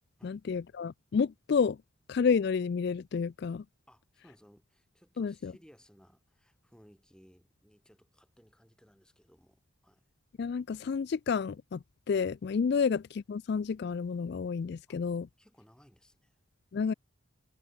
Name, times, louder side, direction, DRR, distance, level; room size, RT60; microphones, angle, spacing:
voice 1, 0.2-1.8 2.1-3.6 5.2-5.5 10.4-15.3 16.7-16.9, left 5 dB, 50° left, 0.3 m, -30 dB
voice 2, 3.9-10.0 12.7-12.8 14.9-15.0 15.4-16.4, equal, 5° left, 7.1 m, -61 dB
head